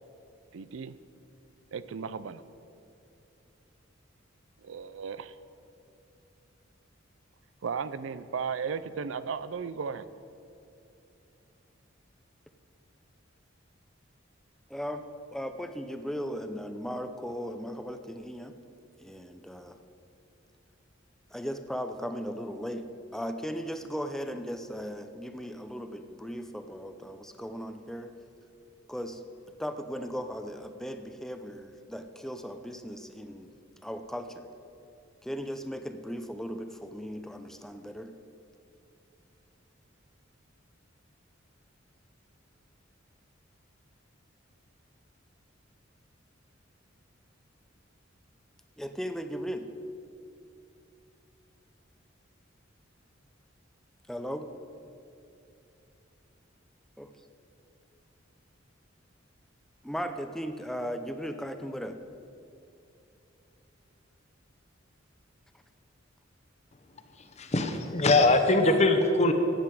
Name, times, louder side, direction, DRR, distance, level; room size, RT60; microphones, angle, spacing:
voice 1, 0.5-1.0 1.7-2.4 4.6-5.4 7.6-10.1, right 6 dB, 70° right, 15 dB, 0.4 m, -35 dB
voice 2, 14.7-15.0 15.3-18.5 19.0-19.8 21.3-22.8 23.1-28.1 28.9-29.2 29.6-33.5 33.8-34.5 35.2-38.1 48.8-49.7 54.1-54.5 57.0-57.1 59.8-62.0, equal, ahead, 7 dB, 0.6 m, -37 dB
voice 3, 67.4-69.3, left 2 dB, 35° left, 7 dB, 0.9 m, -22 dB
15.0 x 9.6 x 4.9 m, 2.8 s
head